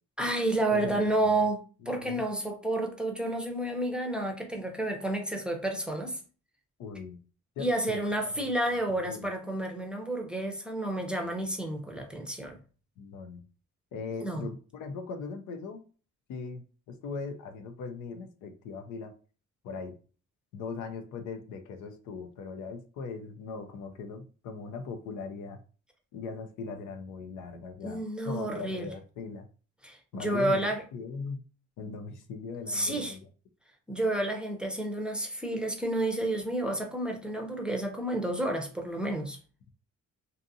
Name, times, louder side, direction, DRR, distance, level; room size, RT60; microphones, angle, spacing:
voice 1, 0.2-6.2 7.6-12.6 14.2-14.5 27.8-28.9 29.8-30.8 32.7-33.1 33.9-39.4, right 1 dB, 5° right, 0.6 m, -30 dB
voice 2, 0.7-1.3 1.8-2.2 6.8-7.2 7.6-8.0 8.2-8.5 8.9-9.3 13.0-13.4 13.9-15.8 16.3-19.1 19.6-20.0 20.5-25.6 26.1-29.5 30.1-30.6 30.9-31.4 31.8-33.3, left 4 dB, 85° left, 0.6 m, -39 dB
2.6 x 2.4 x 2.7 m
cardioid pair, 90°, 30 cm